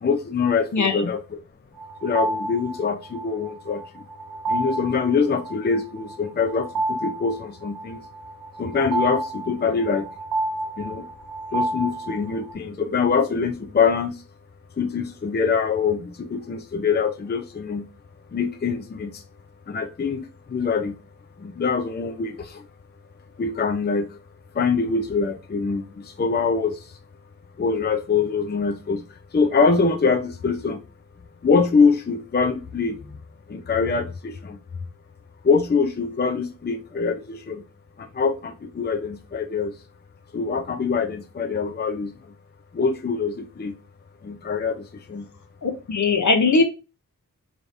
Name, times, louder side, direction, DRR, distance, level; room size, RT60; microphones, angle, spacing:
voice 1, 0.0-1.2 2.0-3.8 4.5-8.0 8.6-10.1 10.8-11.0 11.5-14.1 14.8-17.8 18.3-19.1 19.7-20.2 20.5-20.9 21.4-22.6 23.4-24.1 24.6-25.8 26.2-26.7 27.6-29.0 29.3-30.8 31.4-33.0 33.5-34.6 35.4-37.6 38.2-39.7 40.3-42.1 42.7-43.7 44.2-44.8 45.1-45.2, left 5 dB, 30° left, 0.5 m, -24 dB
voice 2, 0.7-1.1 45.6-46.6, left 4 dB, 60° left, 0.8 m, -20 dB
sound 1, 1.8-12.5, right 2 dB, 80° right, 0.7 m, -30 dB
3.7 x 3.4 x 2.6 m
cardioid pair, 40°, 34 cm